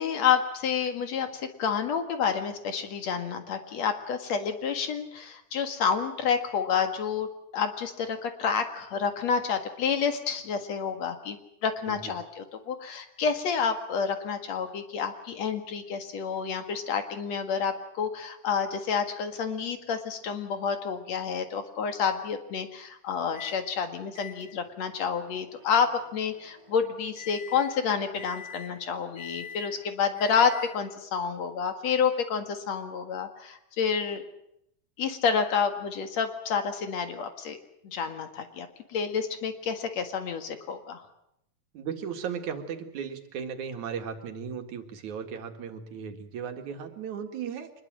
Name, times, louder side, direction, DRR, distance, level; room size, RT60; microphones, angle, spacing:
voice 1, 0.0-34.2 35.0-37.6 37.8-41.0, left 6 dB, 65° left, 7 dB, 3.0 m, -29 dB
Microwave oven, 23.3-23.6 24.1-31.0, left 7 dB, 30° right, 7.9 m, -46 dB
voice 2, 41.7-47.7, right 7 dB, 80° right, 6 dB, 3.3 m, -36 dB
24.0 x 21.0 x 7.6 m, 0.79 s
omnidirectional pair, 3.3 m